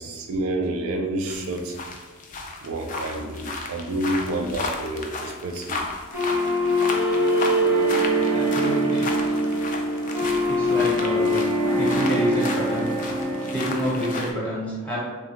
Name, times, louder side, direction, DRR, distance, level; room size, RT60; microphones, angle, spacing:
voice 1, 0.0-1.8 2.6-5.8, right 1 dB, 70° right, 3 dB, 0.4 m, -29 dB
sound 1, 1.3-14.3, left 3 dB, 35° left, 0.3 m, -34 dB
sound 2, 6.1-14.1, equal, 85° left, 1.3 m, -23 dB
voice 2, 8.3-9.1 10.5-11.4 11.7-12.9 13.5-15.0, equal, 5° left, -8 dB, 0.9 m, -28 dB
3.1 x 2.1 x 2.9 m, 1.4 s
head